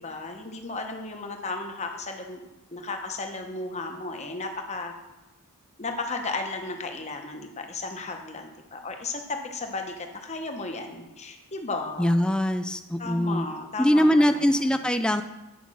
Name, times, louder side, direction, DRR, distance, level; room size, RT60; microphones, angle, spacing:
voice 1, 0.0-2.4 2.7-4.9 5.8-12.1 13.0-14.8, left 3 dB, 30° left, 4 dB, 1.0 m, -34 dB
voice 2, 12.0-13.5 13.8-15.2, equal, 5° left, 8 dB, 0.3 m, -22 dB
9.4 x 5.2 x 6.2 m, 1.0 s
head